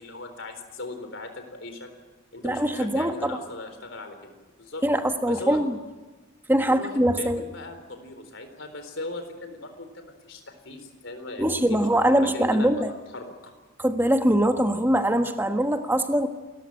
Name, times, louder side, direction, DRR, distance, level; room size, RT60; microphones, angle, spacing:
voice 1, 0.0-1.9 2.3-4.8 5.3-5.6 6.6-6.9 7.2-13.5, left 2 dB, 65° left, 7 dB, 4.1 m, -38 dB
voice 2, 2.4-3.4 4.8-5.8 6.5-7.4 11.4-12.9 13.8-16.3, right 1 dB, 10° right, 6 dB, 1.4 m, -22 dB
29.0 x 14.5 x 9.1 m, 1.2 s
head